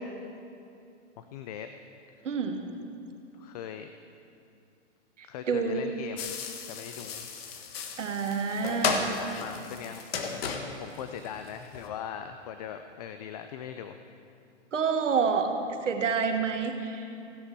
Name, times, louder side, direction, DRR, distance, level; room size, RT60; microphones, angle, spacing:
voice 1, 1.2-1.7 2.2-2.3 3.3-3.9 5.2-6.3 6.7-7.3 8.8-14.0, left 9 dB, 35° left, 8 dB, 0.4 m, -40 dB
voice 2, 2.2-2.6 5.2-5.9 8.0-9.1 14.7-15.5 15.8-17.1, right 5 dB, 90° right, 5 dB, 1.4 m, -28 dB
sound 1, 6.2-11.9, left 5 dB, 55° left, 1.4 m, -34 dB
16.0 x 9.7 x 4.7 m, 2.6 s
hypercardioid pair, 140°, 36 cm